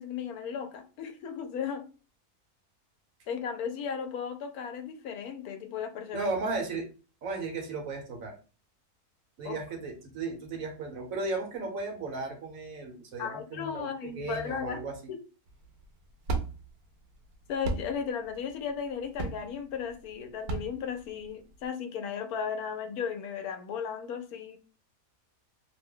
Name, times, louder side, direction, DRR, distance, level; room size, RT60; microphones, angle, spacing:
voice 1, 0.0-1.8 3.3-6.3 9.4-9.6 13.2-14.8 15.1-15.2 17.5-24.6, left 7 dB, 80° left, 1.1 m, -35 dB
voice 2, 6.1-6.9 7.2-8.3 9.4-14.9, right 3 dB, 65° right, 1.2 m, -35 dB
sound 1, 15.5-21.7, right 3 dB, 90° right, 1.1 m, -36 dB
2.9 x 2.1 x 3.6 m
omnidirectional pair, 1.6 m